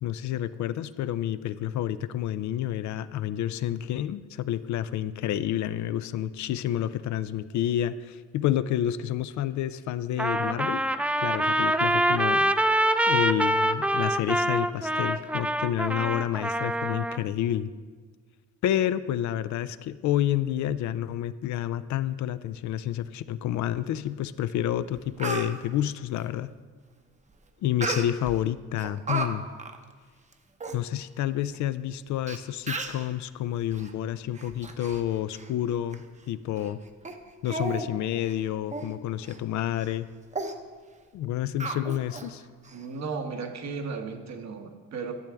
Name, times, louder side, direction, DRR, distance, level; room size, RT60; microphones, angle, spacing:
voice 1, 0.0-10.8 11.2-12.5 13.1-17.7 18.6-26.5 27.6-29.4 30.7-36.8 37.4-40.1 41.1-42.4, left 11 dB, 70° left, 14 dB, 0.4 m, -29 dB
Trumpet, 10.2-17.2, right 1 dB, 5° right, 0.3 m, -25 dB
Speech, 24.5-24.6 24.9-25.5 27.8-28.4 28.8-29.3 29.6-29.8 30.3-30.4 30.6-30.8 31.5-31.6 32.3-32.4 32.7-33.0 33.7-33.9 34.3-35.0 35.3-35.5 35.9-36.0 36.6-36.7 37.0-37.2 37.5-37.9 38.2-38.3 38.7-38.9 39.3-39.4 39.8-40.0 40.3-40.5 41.6-42.3 42.6-42.7, right 3 dB, 25° right, 0.7 m, -33 dB
voice 2, 42.7-45.1, right 4 dB, 60° right, 5 dB, 1.1 m, -35 dB
12.0 x 7.0 x 3.4 m, 1.6 s
cardioid pair, 90°, 30 cm